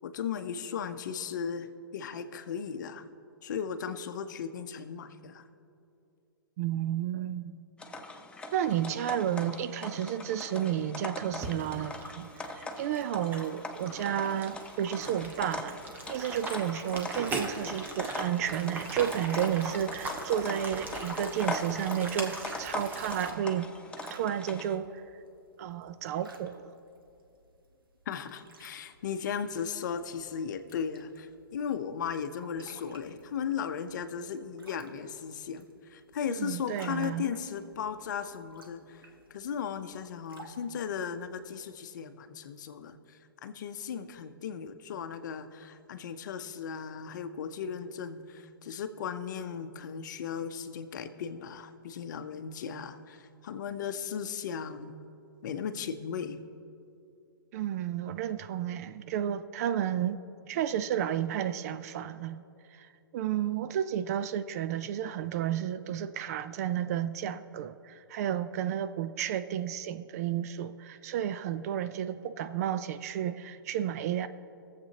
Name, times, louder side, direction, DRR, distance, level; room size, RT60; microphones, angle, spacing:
voice 1, 0.0-3.0 3.4-5.4 28.1-35.6 35.9-39.0 39.3-43.0 43.4-55.0 55.4-56.4, left 7 dB, 55° left, 0.7 m, -36 dB
voice 2, 6.6-7.6 8.5-15.8 16.1-23.7 24.1-25.0 25.6-26.7 36.3-37.3 57.5-60.2 60.4-62.4 62.7-74.3, right 10 dB, 45° right, 0.4 m, -32 dB
sound 1, 7.8-24.8, left 2 dB, 10° left, 0.7 m, -41 dB
sound 2, 11.3-23.3, right 2 dB, 15° right, 1.1 m, -39 dB
sound 3, 23.6-41.6, right 2 dB, 75° right, 1.3 m, -58 dB
22.5 x 7.5 x 2.9 m
figure-of-eight pair, 115°, 12 cm